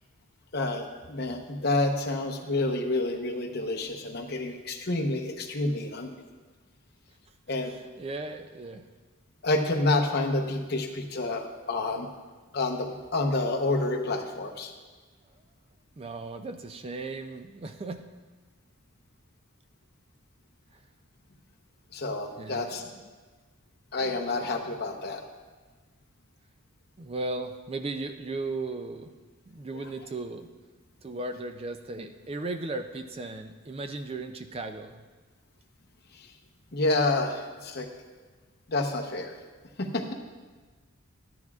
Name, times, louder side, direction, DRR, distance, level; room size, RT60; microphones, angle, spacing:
voice 1, 0.5-6.1 7.5-7.7 9.4-12.1 12.5-14.7 21.9-22.8 23.9-25.2 36.1-36.3 36.7-37.9 38.7-39.4 39.8-40.0, left 2 dB, 50° left, 2 dB, 0.9 m, -28 dB
voice 2, 7.6-8.8 16.0-18.2 20.7-20.8 22.4-23.0 27.0-29.1 29.5-30.5 31.0-35.0, right 2 dB, 25° right, 7 dB, 0.4 m, -36 dB
13.0 x 10.5 x 2.4 m, 1.4 s
head